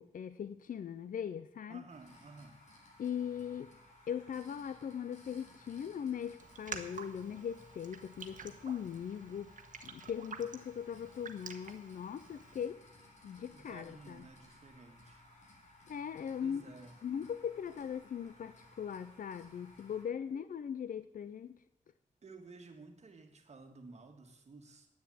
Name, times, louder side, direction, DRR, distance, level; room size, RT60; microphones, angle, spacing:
voice 1, 0.0-1.8 3.0-3.7 4.1-9.5 9.8-12.8 13.2-14.2 15.9-16.6 17.0-21.6, left 8 dB, 90° left, 13 dB, 0.5 m, -40 dB
voice 2, 1.7-2.6 13.5-15.2 16.4-17.0 20.3-20.5 22.2-24.9, right 3 dB, 55° right, 4 dB, 1.8 m, -54 dB
sound 1, 1.9-20.0, left 1 dB, 60° left, 3.7 m, -60 dB
Raindrop, 6.4-12.6, right 5 dB, 75° right, 1.2 m, -49 dB
10.5 x 8.8 x 8.6 m, 0.82 s
wide cardioid pair, 160°, 14 cm